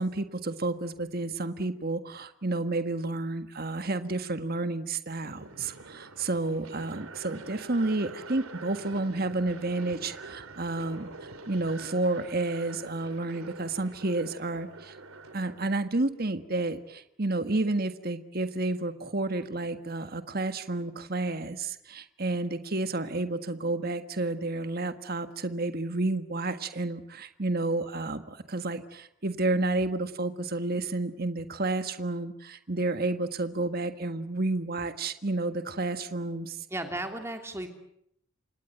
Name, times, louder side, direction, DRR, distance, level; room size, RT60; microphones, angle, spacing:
voice 1, 0.0-11.1 11.5-14.9 15.3-36.6, right 2 dB, 45° right, 9 dB, 1.6 m, -30 dB
sound 1, 5.2-15.7, right 3 dB, 85° right, 3.2 m, -46 dB
voice 2, 36.7-37.7, right 1 dB, 10° right, 5 dB, 3.0 m, -34 dB
29.0 x 25.5 x 8.0 m, 0.73 s
head